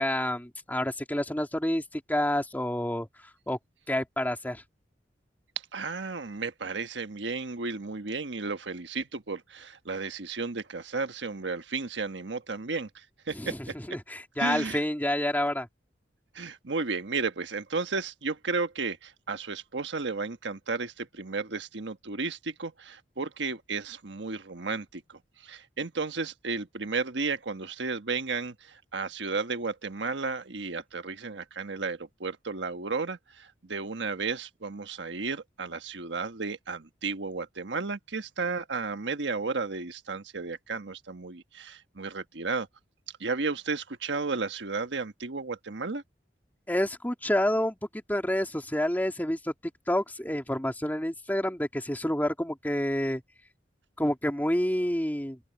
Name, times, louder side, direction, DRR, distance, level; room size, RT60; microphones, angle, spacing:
voice 1, 0.0-3.1 3.5-3.6 3.9-4.6 13.3-15.7 46.7-49.5 49.9-53.2 54.0-55.4, left 1 dB, 10° left, 2.9 m, -28 dB
voice 2, 5.7-13.5 14.4-14.8 16.3-42.7 43.2-46.0, right 4 dB, 80° right, 1.3 m, -33 dB
open air
head